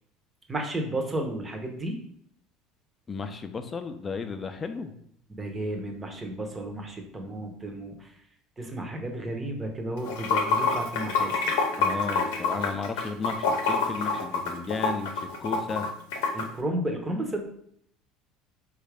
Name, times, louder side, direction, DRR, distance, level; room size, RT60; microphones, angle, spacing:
voice 1, 0.5-2.0 5.4-8.1 8.6-11.5 16.3-17.4, right 1 dB, 20° right, 3 dB, 0.8 m, -33 dB
voice 2, 3.1-4.9 11.8-15.9, left 4 dB, 25° left, 8 dB, 0.4 m, -34 dB
Water / Sink (filling or washing), 10.0-16.4, left 4 dB, 80° left, 0.6 m, -26 dB
4.0 x 2.4 x 3.3 m, 0.68 s
supercardioid pair, 90°, 0 cm